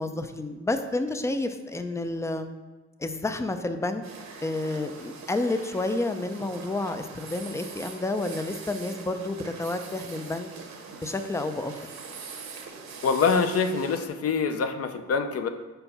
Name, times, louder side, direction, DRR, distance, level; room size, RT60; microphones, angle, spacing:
voice 1, 0.0-2.5 3.0-4.0 4.4-10.5 11.0-11.8, left 2 dB, 10° left, 8 dB, 0.4 m, -30 dB
sound 1, 4.0-14.1, right 5 dB, 65° right, 1.1 m, -43 dB
voice 2, 13.0-15.5, left 5 dB, 50° left, 8 dB, 0.6 m, -25 dB
4.5 x 4.4 x 5.4 m, 1.3 s
cardioid pair, 90°, 30 cm